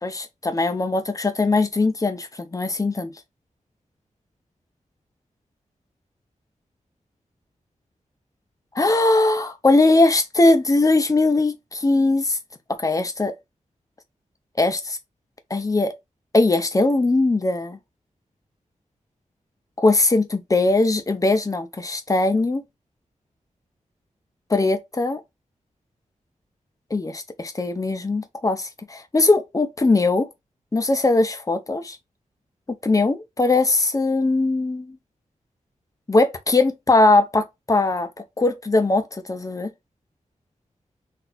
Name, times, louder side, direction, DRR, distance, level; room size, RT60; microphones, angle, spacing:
voice 1, 0.0-3.1 8.7-12.4 12.8-13.3 14.6-15.0 15.5-15.9 16.3-17.8 19.8-20.2 20.5-22.6 24.5-25.2 26.9-30.3 30.7-32.0 32.8-35.0 36.1-38.1 38.4-39.7, left 2 dB, 25° left, 0.7 m, -20 dB
4.0 x 2.7 x 2.4 m
wide cardioid pair, 105°, 13 cm